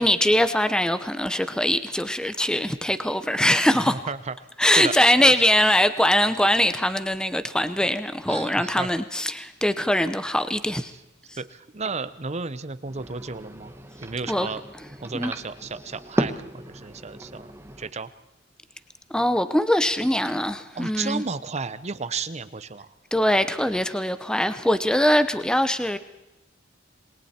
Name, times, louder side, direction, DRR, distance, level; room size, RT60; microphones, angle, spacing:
voice 1, 0.0-3.9 4.6-10.9 14.3-14.5 15.1-15.3 19.1-21.2 23.1-26.0, left 1 dB, 5° left, 0.8 m, -22 dB
voice 2, 3.9-4.3 4.8-4.9 5.2-5.3 8.3-8.9 10.9-11.0 11.4-13.7 14.0-14.6 15.0-17.5 17.8-18.1 20.7-22.9, right 4 dB, 35° right, 0.8 m, -33 dB
botella sobre la mesa, 12.8-17.9, right 1 dB, 15° right, 1.3 m, -34 dB
27.5 x 21.5 x 4.4 m
head